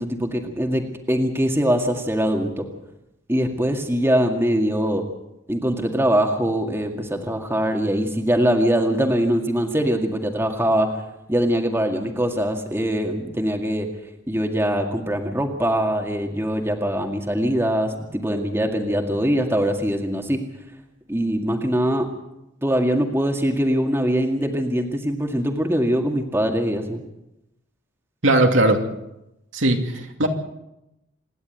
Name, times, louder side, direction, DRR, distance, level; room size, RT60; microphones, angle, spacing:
voice 1, 0.0-2.6 3.3-5.0 5.5-10.9 11.3-13.9 14.3-20.4 21.1-22.1 22.6-27.0, equal, 10° right, 3 dB, 2.1 m, -22 dB
voice 2, 28.2-28.8 29.5-30.3, right 1 dB, 75° right, 3 dB, 2.7 m, -18 dB
27.0 x 11.0 x 9.2 m, 0.90 s
head